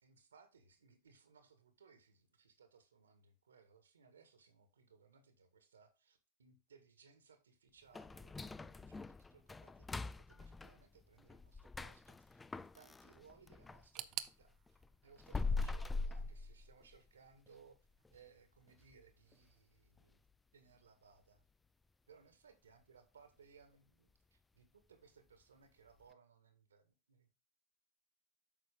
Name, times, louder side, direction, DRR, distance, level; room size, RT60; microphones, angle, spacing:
voice 1, 0.0-20.2 20.5-21.4 22.1-27.3, right 5 dB, 85° right, 1.8 m, -65 dB
sound 1, 7.9-13.9 14.3-17.1 17.5-17.6 18.0-18.2 18.7-19.0 19.3-19.4 20.0-20.1, left 3 dB, 10° left, 0.4 m, -43 dB
sound 2, 13.9-16.8 17.1-17.9 18.2-18.3 19.1-19.2, right 13 dB, 40° right, 0.7 m, -50 dB
9.0 x 6.0 x 3.7 m
hypercardioid pair, 95°, 0 cm